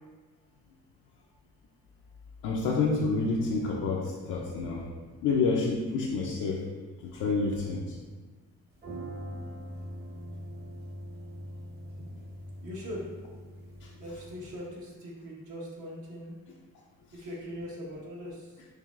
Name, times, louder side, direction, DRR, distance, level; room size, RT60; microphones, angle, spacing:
voice 1, 2.4-4.9 5.2-6.7 7.1-8.0 13.8-13.9, left 4 dB, 85° left, -3 dB, 0.5 m, -28 dB
sound 1, 8.7-14.6, equal, 35° right, 0.8 m, -42 dB
voice 2, 12.6-13.1 14.0-16.4 17.1-18.6, equal, 75° right, -4 dB, 1.2 m, -40 dB
4.8 x 2.9 x 2.4 m, 1.3 s
cardioid pair, 90°, 30 cm